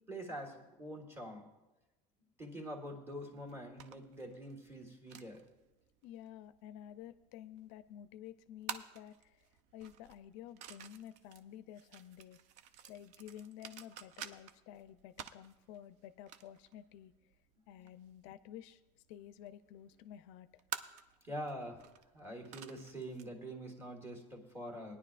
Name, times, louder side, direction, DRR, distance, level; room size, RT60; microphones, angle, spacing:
voice 1, 0.1-1.5 2.4-5.4 17.6-17.7 21.2-21.9 22.1-25.0, equal, 15° right, 2 dB, 1.6 m, -45 dB
sound 1, 3.4-23.3, right 9 dB, 55° right, 0.5 m, -52 dB
voice 2, 6.0-9.5 9.7-12.4 12.9-17.3 17.7-18.8 19.1-20.6, left 11 dB, 75° left, 13 dB, 0.4 m, -52 dB
18.5 x 10.0 x 2.5 m, 1.0 s
cardioid pair, 155°, 15 cm